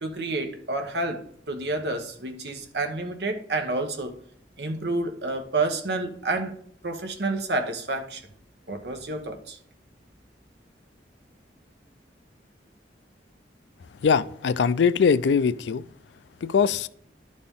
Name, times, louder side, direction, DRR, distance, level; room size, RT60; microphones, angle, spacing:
voice 1, 0.0-4.1 4.6-6.5 6.8-8.2 8.7-9.6, right 2 dB, 65° right, 1.0 m, -29 dB
voice 2, 13.9-15.8 16.4-16.9, left 6 dB, 70° left, 0.4 m, -22 dB
11.5 x 4.3 x 3.6 m
head